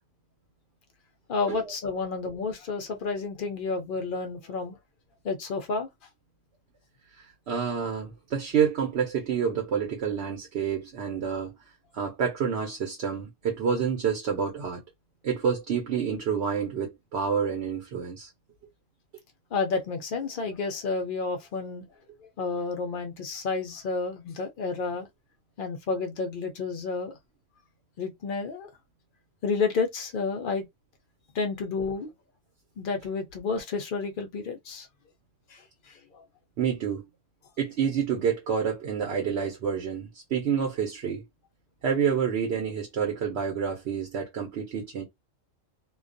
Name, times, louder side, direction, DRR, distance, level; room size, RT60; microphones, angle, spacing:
voice 1, 1.3-4.8 5.2-5.9 19.5-21.8 22.2-25.1 25.6-27.1 28.0-28.7 29.4-30.6 31.3-32.1 32.8-34.9 35.5-36.2, left 4 dB, 60° left, 0.5 m, -30 dB
voice 2, 7.1-11.5 11.9-14.8 15.2-18.3 36.6-37.0 37.6-41.2 41.8-45.0, right 7 dB, 65° right, 0.9 m, -28 dB
2.3 x 2.2 x 2.5 m
omnidirectional pair, 1.3 m